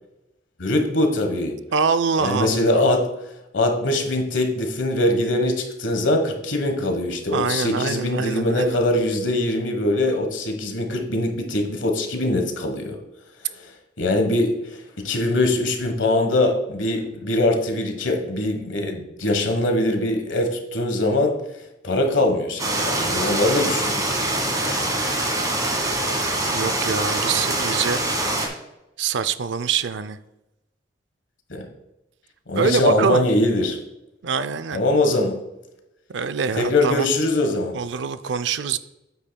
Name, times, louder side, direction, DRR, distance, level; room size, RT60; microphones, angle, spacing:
voice 1, 0.6-1.6 2.2-3.1 3.5-13.0 13.5-21.3 21.8-24.7 31.5-31.7 32.5-33.8 34.7-35.4 36.6-37.7, left 1 dB, 85° left, 5 dB, 1.3 m, -22 dB
voice 2, 1.7-2.8 7.3-8.8 26.5-28.0 29.0-30.2 32.5-33.2 34.2-34.8 36.1-37.1 37.7-38.8, right 6 dB, 70° right, 13 dB, 0.4 m, -24 dB
sound 1, 22.6-28.5, right 1 dB, 20° right, 1.5 m, -24 dB
8.6 x 8.5 x 2.3 m, 0.92 s
head